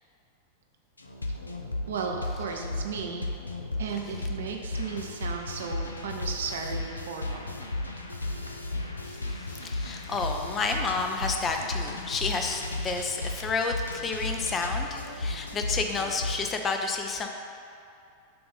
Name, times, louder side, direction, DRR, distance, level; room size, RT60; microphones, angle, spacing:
sound 1, 1.0-16.5, left 2 dB, 80° left, 0.4 m, -34 dB
voice 1, 1.9-3.3 3.8-7.6, right 6 dB, 60° right, 2 dB, 0.6 m, -35 dB
voice 2, 9.0-17.3, left 4 dB, 25° left, 4 dB, 0.5 m, -30 dB
6.8 x 2.6 x 5.4 m, 2.5 s
figure-of-eight pair, 90°, 0 cm